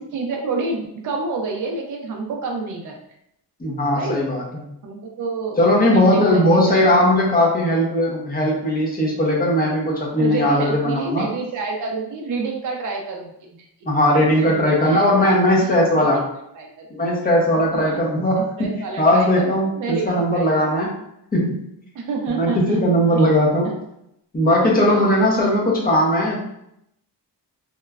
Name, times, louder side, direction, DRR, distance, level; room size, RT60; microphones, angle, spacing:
voice 1, 0.1-3.0 3.9-4.2 4.8-5.6 5.8-6.7 10.2-13.3 14.2-15.3 15.6-15.7 16.0-16.1 16.5-16.9 17.7-18.0 18.6-20.8 21.9-23.4 23.6-23.7 24.8-25.3, right 3 dB, 50° right, 0 dB, 0.5 m, -28 dB
voice 2, 3.6-4.4 5.6-11.3 13.9-16.2 16.9-18.7 19.0-20.9 21.3-21.7 22.3-23.8 24.3-26.4, left 1 dB, 20° left, -3 dB, 0.6 m, -18 dB
3.0 x 2.2 x 2.3 m, 0.77 s
wide cardioid pair, 180°, 42 cm